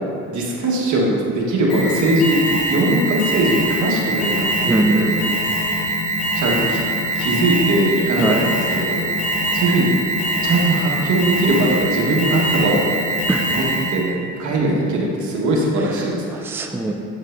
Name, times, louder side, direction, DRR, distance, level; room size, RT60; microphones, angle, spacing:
voice 1, 0.3-5.2 6.3-6.8 7.1-9.0 9.5-9.9 10.4-12.8 13.5-13.6 13.9-16.4, right 1 dB, 75° right, -3 dB, 1.4 m, -20 dB
Alarm, 1.7-14.1, right 1 dB, 55° left, 1.3 m, -22 dB
voice 2, 4.7-5.5 8.2-8.5 13.3-13.4 16.3-16.9, right 2 dB, 10° right, 3 dB, 0.4 m, -21 dB
8.2 x 6.4 x 2.6 m, 2.5 s
cardioid pair, 90°, 30 cm